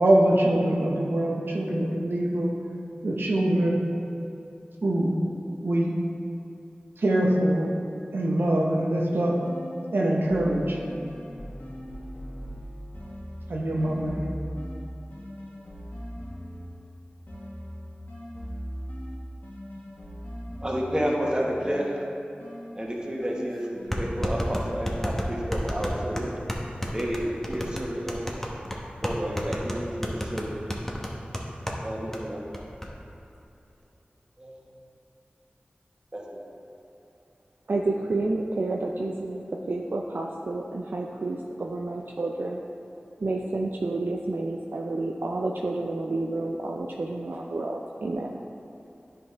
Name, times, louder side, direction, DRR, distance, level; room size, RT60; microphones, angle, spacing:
voice 1, 0.0-2.6 3.0-3.8 4.8-5.2 5.6-6.0 7.0-7.7 8.1-9.4 9.9-10.8 13.5-14.2, right 1 dB, 90° right, -2 dB, 0.8 m, -23 dB
sound 1, 9.4-10.0 10.2-16.9 17.3-21.2 21.6-25.3, equal, 65° left, 1.8 m, -40 dB
voice 2, 20.6-22.0 22.7-26.3 26.9-28.2 29.0-30.6 31.8-32.4 34.4-34.6 36.1-36.4, equal, 25° right, -3 dB, 1.4 m, -30 dB
sound 2, 23.0-23.1 23.9-31.8 32.1-32.2 32.5-32.9, equal, 10° left, 0.9 m, -31 dB
voice 3, 37.7-42.6 43.2-48.4, right 2 dB, 70° right, 0 dB, 0.4 m, -30 dB
10.0 x 5.2 x 3.4 m, 2.8 s
wide cardioid pair, 45°, 4 cm